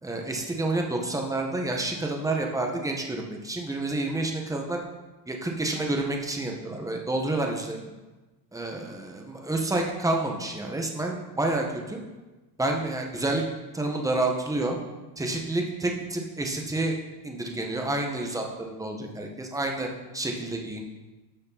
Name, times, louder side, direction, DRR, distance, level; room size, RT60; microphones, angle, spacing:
voice 1, 0.0-4.8 5.3-7.8 8.5-12.0 12.6-13.4 13.7-14.8 15.2-17.0 17.2-20.8, right 2 dB, 5° right, 1 dB, 1.7 m, -29 dB
11.5 x 6.4 x 4.2 m, 1.1 s
hypercardioid pair, 75°, 50 cm